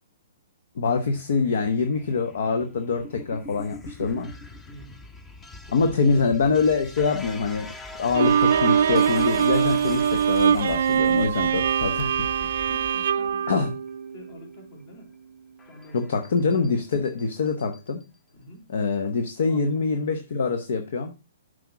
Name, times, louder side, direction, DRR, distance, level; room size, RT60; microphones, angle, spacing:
voice 1, 0.8-4.3 5.7-7.7 8.0-12.3 13.5-13.7 15.9-18.0 18.7-21.1, left 4 dB, 65° left, 7 dB, 1.0 m, -24 dB
sound 1, 0.9-13.9 15.6-18.0 19.2-19.7, left 2 dB, 15° left, 0.8 m, -43 dB
voice 2, 4.7-5.0 5.7-6.2 12.4-13.6 14.1-15.1 15.6-16.3 18.4-18.7 19.4-19.8, left 1 dB, 45° left, 2 dB, 3.6 m, -47 dB
Bowed string instrument, 8.1-14.4, right 8 dB, 65° right, 0.4 m, -23 dB
7.8 x 5.1 x 4.7 m, 0.29 s
hypercardioid pair, 125°, 0 cm